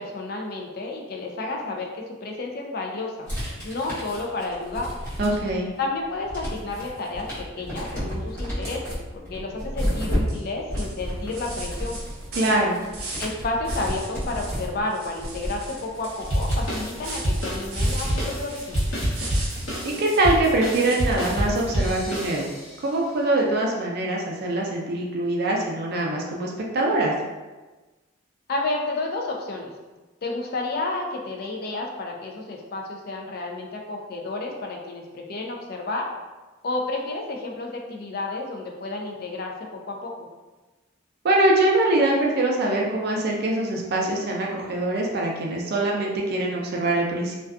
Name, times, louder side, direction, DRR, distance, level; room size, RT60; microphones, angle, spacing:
voice 1, 0.0-3.3 3.6-4.9 5.8-12.0 13.2-18.8 28.5-29.7 30.2-36.1 36.6-39.5 39.9-40.1, left 2 dB, 50° left, 0 dB, 0.4 m, -31 dB
sound 1, 3.3-5.7 6.0-20.0, equal, 15° left, 1.0 m, -32 dB
voice 2, 5.2-5.7 12.4-12.8 19.8-22.5 22.8-27.1 41.2-47.4, right 2 dB, 50° right, -1 dB, 0.4 m, -23 dB
sound 2, 10.3-10.5 10.8-13.4 13.7-14.6 14.9-20.3 20.7-21.6, right 2 dB, 90° right, 0.6 m, -39 dB
sound 3, 16.3-22.8, equal, 75° left, 1.0 m, -27 dB
2.5 x 2.2 x 2.3 m, 1.2 s
head